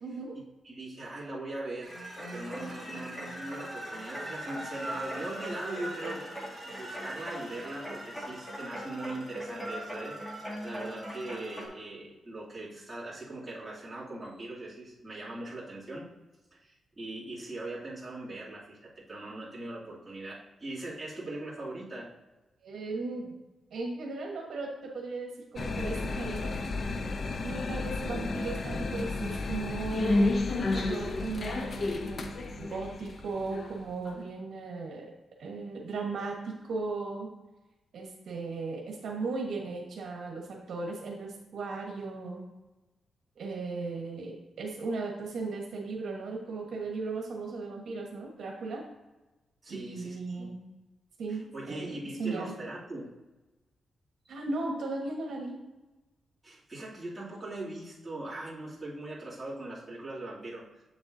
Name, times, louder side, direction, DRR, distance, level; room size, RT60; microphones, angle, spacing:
voice 1, 0.0-0.4 22.6-23.3 23.7-26.5 26.9-27.0 27.4-35.1 35.4-37.3 37.9-42.4 43.4-48.8 49.7-50.6 51.2-52.5 54.3-55.5, right 3 dB, 70° right, 0 dB, 1.3 m, -37 dB
voice 2, 0.6-2.0 2.3-6.3 6.6-16.1 16.5-22.1 49.6-50.5 51.3-53.1 56.4-60.7, right 2 dB, 10° right, -8 dB, 2.6 m, -40 dB
sound 1, 1.8-11.7, equal, 15° left, 2.0 m, -40 dB
sound 2, 25.6-34.2, left 2 dB, 45° left, 0.6 m, -31 dB
7.8 x 7.0 x 2.7 m, 1.1 s
wide cardioid pair, 130°, 0 cm